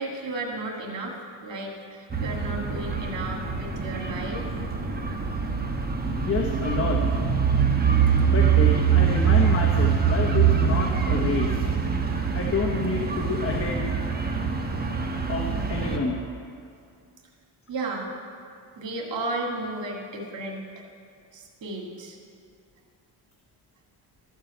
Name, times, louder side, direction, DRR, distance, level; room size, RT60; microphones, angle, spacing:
voice 1, 0.0-4.4 17.7-18.1 18.8-20.7 21.3-22.2, right 2 dB, 80° right, 0 dB, 2.1 m, -33 dB
sound 1, 2.1-16.0, right 7 dB, 20° right, 1.1 m, -24 dB
voice 2, 6.3-7.0 8.3-11.7 12.3-13.8 15.3-16.2, left 4 dB, 30° left, 0 dB, 1.2 m, -28 dB
13.0 x 4.7 x 7.8 m, 2.3 s
cardioid pair, 85°, 43 cm